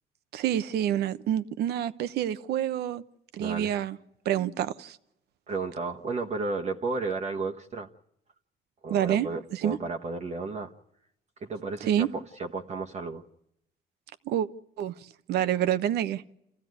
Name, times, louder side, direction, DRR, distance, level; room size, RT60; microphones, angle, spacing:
voice 1, 0.3-3.0 3.3-4.0 4.2-5.0 8.9-9.8 11.9-12.1 14.3-14.5 14.8-14.9 15.3-16.2, right 11 dB, 75° right, 1.0 m, -27 dB
voice 2, 3.4-3.7 5.5-7.9 8.8-10.7 11.4-13.2, right 3 dB, 40° right, 1.2 m, -33 dB
28.5 x 15.5 x 9.5 m
cardioid pair, 110°, 17 cm